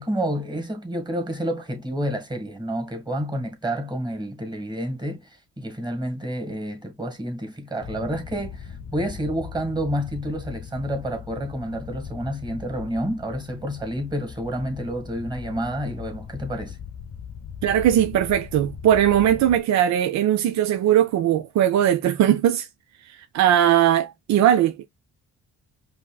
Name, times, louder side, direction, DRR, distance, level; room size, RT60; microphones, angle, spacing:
voice 1, 0.0-5.3 5.6-16.8, equal, 15° right, 1.6 m, -29 dB
sound 1, 7.8-19.6, left 7 dB, 55° left, 0.7 m, -39 dB
voice 2, 17.6-22.7 23.1-24.8, right 11 dB, 65° right, 0.5 m, -19 dB
5.2 x 2.7 x 2.3 m
cardioid pair, 90°, 30 cm